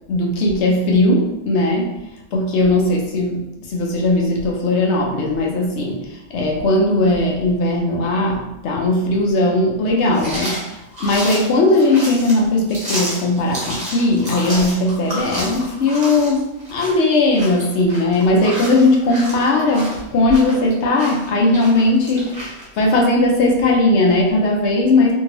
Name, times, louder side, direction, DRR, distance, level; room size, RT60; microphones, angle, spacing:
voice 1, 0.1-2.0 2.3-25.1, left 2 dB, 65° left, 0 dB, 0.8 m, -18 dB
sound 1, 10.1-22.7, equal, 35° right, 0.9 m, -31 dB
2.7 x 2.6 x 2.9 m, 0.94 s
omnidirectional pair, 1.5 m